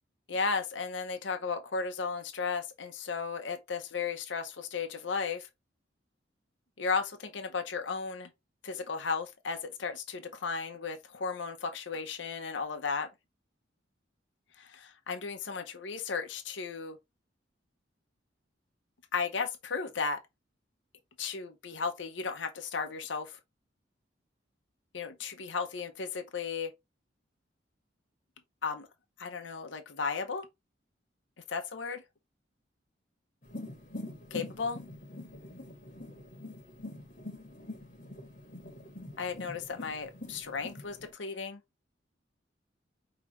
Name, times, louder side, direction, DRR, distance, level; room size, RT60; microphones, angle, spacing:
voice 1, 0.3-5.5 6.8-8.3 8.6-13.1 14.6-17.0 19.1-20.2 21.2-23.4 24.9-26.7 28.6-28.9 29.2-30.5 31.5-32.0 34.3-34.8 39.2-41.6, left 5 dB, 85° left, 0.8 m, -35 dB
sound 1, 33.4-41.1, left 1 dB, 50° left, 1.3 m, -45 dB
4.9 x 3.0 x 3.1 m
head